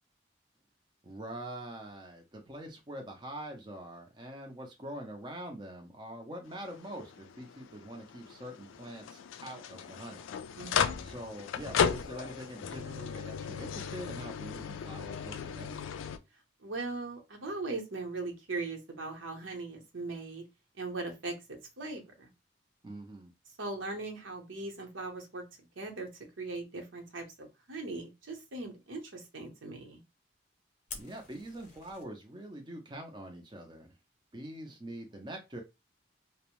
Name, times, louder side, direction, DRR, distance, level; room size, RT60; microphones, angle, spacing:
voice 1, 1.0-10.3 11.0-15.8 22.8-23.3 30.9-33.9 34.3-35.6, right 1 dB, 25° right, 2 dB, 0.5 m, -44 dB
sound 1, 6.5-16.2, left 7 dB, 80° left, 0.3 m, -36 dB
voice 2, 10.6-11.1 16.6-20.4 20.8-22.3 23.6-25.4 25.8-26.1 26.4-30.0, right 3 dB, 80° right, 2 dB, 0.8 m, -39 dB
Fire, 30.9-32.0, left 5 dB, 40° left, 0.6 m, -47 dB
2.6 x 2.0 x 3.0 m, 0.24 s
head